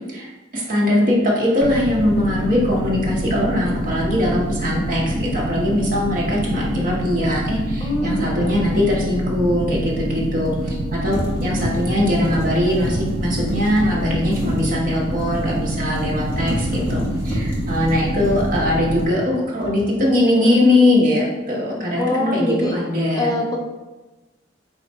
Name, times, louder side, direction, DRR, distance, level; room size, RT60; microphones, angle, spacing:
voice 1, 0.1-23.3, left 1 dB, 50° right, -4 dB, 1.1 m, -21 dB
sound 1, 1.6-19.1, right 1 dB, 75° right, 0.6 m, -26 dB
sound 2, 7.1-7.3 10.4-10.8 11.1-19.3 19.6-20.1, equal, 15° right, 1.2 m, -30 dB
voice 2, 7.8-8.5 20.4-20.8 22.0-22.8 23.2-23.6, left 1 dB, 20° left, 0 dB, 0.4 m, -24 dB
4.4 x 2.4 x 4.1 m, 1.2 s
head